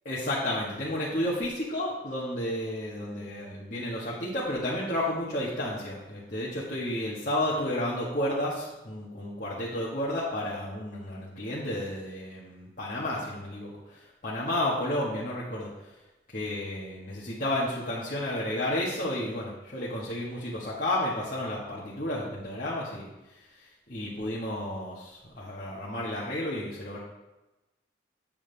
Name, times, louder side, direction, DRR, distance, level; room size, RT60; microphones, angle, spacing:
voice 1, 0.0-15.7 16.3-27.0, left 1 dB, 45° left, -7 dB, 1.5 m, -32 dB
8.8 x 7.2 x 3.4 m, 1.0 s
head